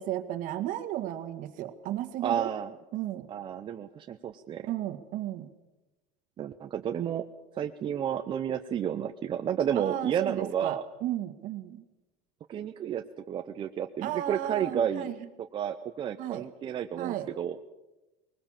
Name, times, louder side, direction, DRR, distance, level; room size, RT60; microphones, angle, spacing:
voice 1, 0.0-2.5 2.9-3.3 4.7-5.5 9.8-11.8 14.0-15.1 16.2-16.5 17.0-17.3, right 13 dB, 50° right, 8 dB, 1.8 m, -34 dB
voice 2, 2.2-2.7 3.3-4.7 6.4-7.2 7.6-10.8 12.5-15.1 15.5-17.6, right 9 dB, 30° right, 6 dB, 0.7 m, -31 dB
21.0 x 20.0 x 7.4 m, 1.1 s
cardioid pair, 155°, 17 cm